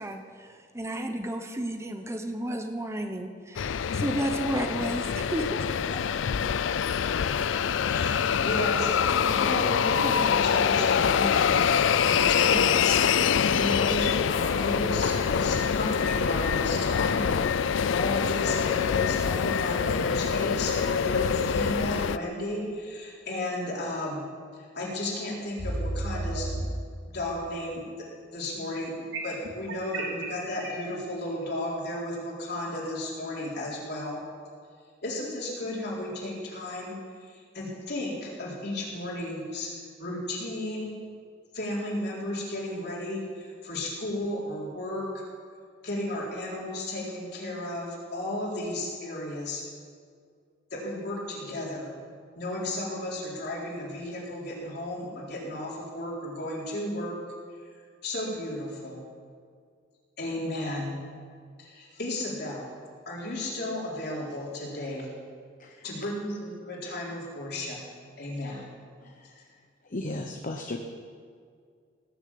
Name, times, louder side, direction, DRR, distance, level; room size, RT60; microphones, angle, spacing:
voice 1, 0.0-5.5, right 1 dB, 15° right, 5 dB, 0.9 m, -32 dB
sound 1, 3.6-22.2, left 7 dB, 80° left, 0.4 m, -25 dB
voice 2, 7.9-8.2 8.4-24.2 24.6-26.7 27.1-28.9 29.2-34.2 35.0-36.9 37.2-39.7 40.0-41.0 41.5-45.2 45.8-49.6 50.7-51.9 52.3-57.2 58.0-59.0 60.2-61.0 61.6-62.7 63.1-65.1 65.8-67.8 68.2-68.7, left 1 dB, 60° left, -4 dB, 4.1 m, -34 dB
sound 2, 24.9-25.0 25.6-26.6 29.1-30.8, right 2 dB, 90° right, 3.0 m, -32 dB
voice 3, 65.6-66.0 69.0-70.8, left 2 dB, 45° left, 3 dB, 1.0 m, -37 dB
18.5 x 7.2 x 8.5 m, 2.1 s
head